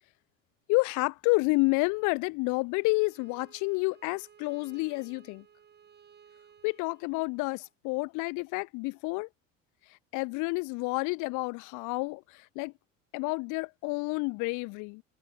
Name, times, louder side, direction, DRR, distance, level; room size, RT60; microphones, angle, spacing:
voice 1, 0.7-5.4 6.6-9.3 10.1-12.7 13.1-15.0, left 27 dB, 50° left, 0.7 m, -29 dB
Bowed string instrument, 2.7-7.7, right 8 dB, 25° right, 1.6 m, -58 dB
figure-of-eight pair, 60°, 40 cm